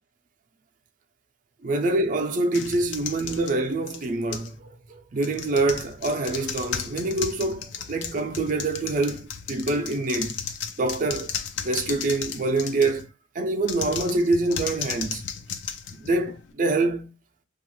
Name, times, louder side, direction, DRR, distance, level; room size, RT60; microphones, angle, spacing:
voice 1, 1.6-10.4 10.8-11.3 11.6-13.1 13.3-15.2 15.9-17.1, right 2 dB, 45° right, 0.4 m, -25 dB
sound 1, 2.5-4.6 5.2-13.1 13.6-16.5, left 7 dB, 75° left, 0.4 m, -35 dB
2.9 x 2.3 x 3.0 m
head